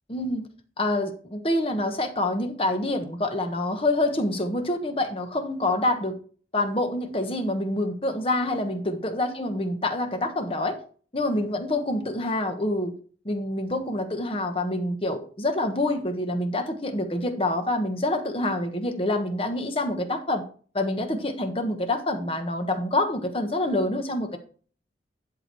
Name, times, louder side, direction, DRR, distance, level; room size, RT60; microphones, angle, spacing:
voice 1, 0.1-0.5 0.8-6.2 6.5-10.8 11.1-12.9 13.2-20.4 20.7-24.4, left 1 dB, 30° left, 1.2 m, -26 dB
11.0 x 4.5 x 4.7 m
head